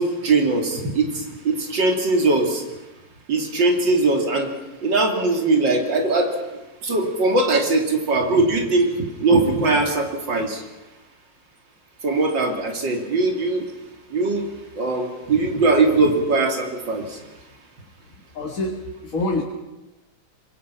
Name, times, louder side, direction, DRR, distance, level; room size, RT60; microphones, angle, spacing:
voice 1, 0.0-2.6 3.3-4.5 4.8-6.3 6.8-10.6 12.0-13.6 14.1-14.5 14.8-17.2, right 3 dB, 85° right, 3 dB, 3.5 m, -20 dB
voice 2, 18.3-19.4, left 2 dB, 50° left, 0 dB, 2.4 m, -26 dB
25.5 x 22.0 x 5.8 m, 1.0 s
omnidirectional pair, 1.9 m